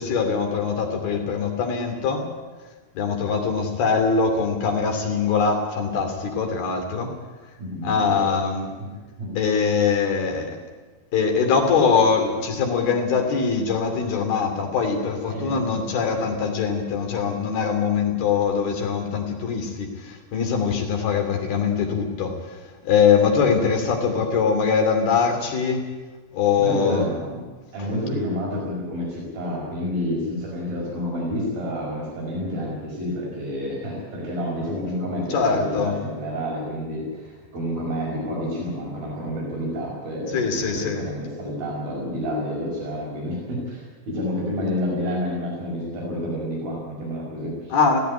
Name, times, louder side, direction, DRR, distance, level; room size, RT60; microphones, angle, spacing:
voice 1, 0.0-2.3 2.9-7.1 7.8-8.7 9.4-10.6 11.1-22.6 22.8-25.8 26.3-27.0 35.3-35.9 40.3-41.0 47.7-48.0, left 5 dB, 85° left, 3 dB, 4.9 m, -22 dB
voice 2, 7.6-8.3 8.8-8.9 9.2-9.3 15.3-16.0 26.6-27.4 27.7-47.7, equal, 70° right, -4 dB, 7.1 m, -29 dB
17.5 x 16.0 x 9.8 m, 1.3 s
omnidirectional pair, 4.3 m